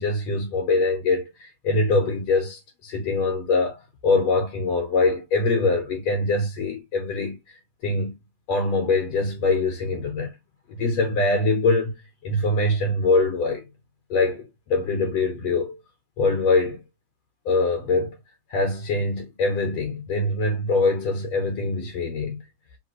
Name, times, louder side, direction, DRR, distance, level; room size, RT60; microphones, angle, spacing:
voice 1, 0.0-7.4 7.8-8.2 8.5-10.3 10.7-12.0 12.2-13.7 14.1-15.8 16.2-16.8 17.5-18.2 18.5-22.4, left 3 dB, 65° left, 2.1 m, -23 dB
4.8 x 3.4 x 3.0 m
omnidirectional pair, 3.3 m